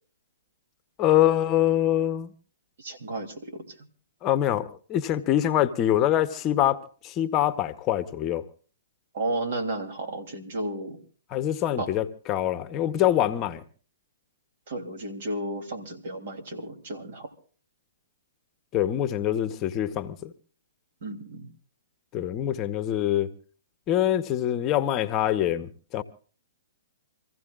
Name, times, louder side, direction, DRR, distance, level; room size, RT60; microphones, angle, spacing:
voice 1, 1.0-2.3 4.2-8.4 11.3-13.6 18.7-20.3 22.1-23.3 23.9-26.0, left 12 dB, 25° left, 0.8 m, -24 dB
voice 2, 2.8-3.9 9.1-11.0 11.8-11.9 14.7-17.3 21.0-21.5, right 2 dB, 60° right, 3.0 m, -33 dB
27.5 x 15.5 x 2.4 m
hypercardioid pair, 140°, 0 cm